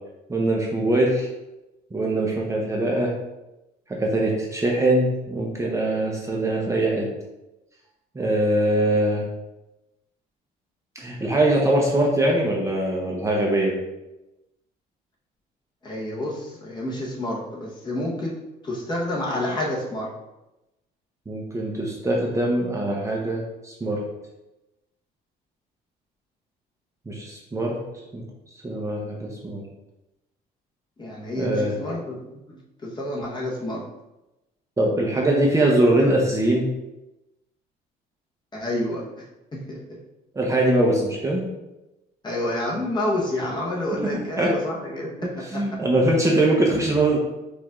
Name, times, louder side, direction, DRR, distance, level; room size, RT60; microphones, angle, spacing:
voice 1, 0.3-1.3 1.9-3.1 3.9-7.1 8.1-9.3 10.9-13.7 21.3-24.0 27.1-27.8 28.1-28.2 28.6-29.6 31.3-31.8 34.8-36.6 40.3-41.4 44.4-44.5 45.2-47.2, right 1 dB, 15° right, -2 dB, 0.7 m, -22 dB
voice 2, 15.8-20.1 31.0-32.2 32.5-33.9 38.5-39.1 39.5-40.0 42.2-45.8, left 1 dB, 25° left, -3 dB, 1.2 m, -29 dB
4.9 x 2.6 x 3.6 m, 0.97 s
cardioid pair, 110°, 17 cm